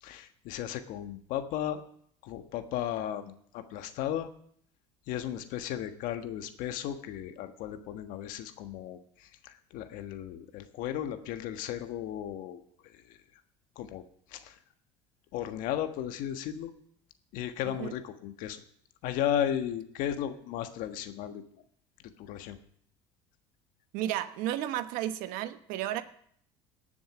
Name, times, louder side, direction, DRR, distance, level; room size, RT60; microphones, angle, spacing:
voice 1, 0.0-1.8 2.2-4.3 5.1-13.2 13.7-14.0 14.3-14.6 15.3-16.7 17.3-18.6 19.0-21.4 22.2-22.6, left 10 dB, 70° left, 8 dB, 1.5 m, -35 dB
voice 2, 17.6-17.9 23.9-26.0, right 12 dB, 70° right, 11 dB, 1.1 m, -33 dB
19.0 x 7.1 x 6.1 m, 0.65 s
supercardioid pair, 90°, 15 cm